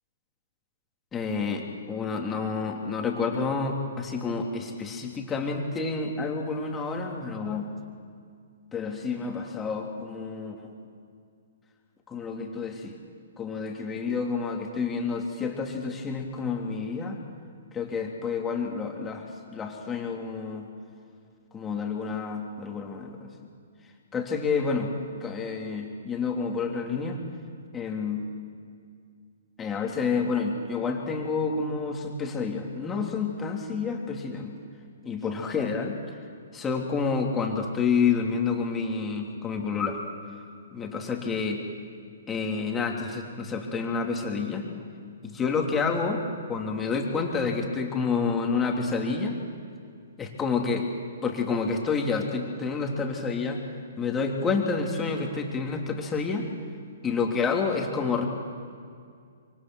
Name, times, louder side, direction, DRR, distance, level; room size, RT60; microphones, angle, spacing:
voice 1, 1.1-7.7 8.7-10.7 12.1-13.0 13.4-17.2 17.7-19.3 19.5-20.7 21.5-23.3 24.1-24.9 25.2-27.2 27.7-28.3 29.6-34.5 35.0-36.2 36.5-40.0 40.7-41.6 42.3-44.7 45.2-46.2 46.5-49.4 50.2-50.9 51.2-53.6 54.0-56.5 57.0-58.3, left 5 dB, 15° left, 1 dB, 2.9 m, -29 dB
26.0 x 24.0 x 6.3 m, 2.2 s
hypercardioid pair, 130°, 0 cm